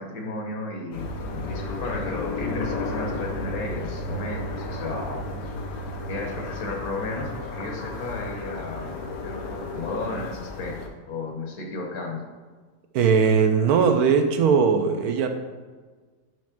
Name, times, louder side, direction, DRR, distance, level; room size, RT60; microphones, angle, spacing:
voice 1, 0.0-5.2 6.1-9.0 9.2-10.8 11.1-12.2, left 2 dB, 65° left, 1 dB, 1.4 m, -33 dB
sound 1, 0.9-10.9, left 2 dB, 85° left, 1.4 m, -33 dB
voice 2, 12.9-15.3, right 6 dB, 70° right, 6 dB, 1.0 m, -19 dB
7.2 x 3.1 x 5.9 m, 1.4 s
omnidirectional pair, 1.7 m